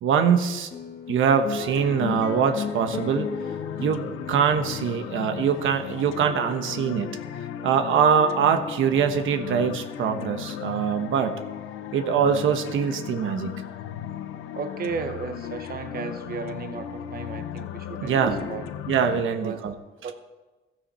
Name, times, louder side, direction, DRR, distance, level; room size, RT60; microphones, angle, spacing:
voice 1, 0.0-0.7 1.1-3.3 3.8-4.0 4.3-7.1 7.6-11.3 11.9-13.5 18.0-18.5 18.9-19.7, right 7 dB, 75° right, 7 dB, 1.1 m, -23 dB
sound 1, 0.7-7.4, left 6 dB, 50° left, 2.0 m, -35 dB
sound 2, 1.7-19.2, left 10 dB, 90° left, 0.9 m, -36 dB
voice 2, 14.5-18.2 18.5-18.7 19.4-19.6 20.0-20.1, right 5 dB, 45° right, 8 dB, 1.1 m, -34 dB
15.5 x 13.5 x 4.3 m, 1.2 s
cardioid pair, 110°, 21 cm